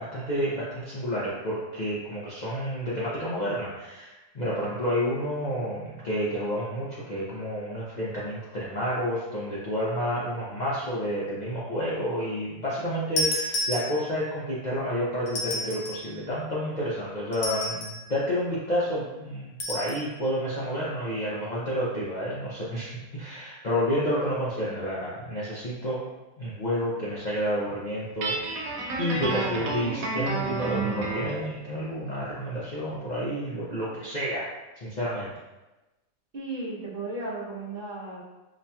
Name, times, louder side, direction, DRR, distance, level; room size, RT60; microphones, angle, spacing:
voice 1, 0.0-26.0 26.4-28.4 29.0-34.5 34.8-35.3, equal, 90° left, -8 dB, 0.3 m, -30 dB
sound 1, 13.2-14.3 15.3-16.1 17.3-18.1 19.6-20.0, left 1 dB, 70° left, 1.2 m, -31 dB
Guitar, 28.2-31.4, right 3 dB, 70° right, 1.0 m, -30 dB
voice 2, 36.3-38.2, right 2 dB, 45° right, -6 dB, 0.8 m, -35 dB
5.2 x 2.8 x 2.2 m, 1.1 s
omnidirectional pair, 1.8 m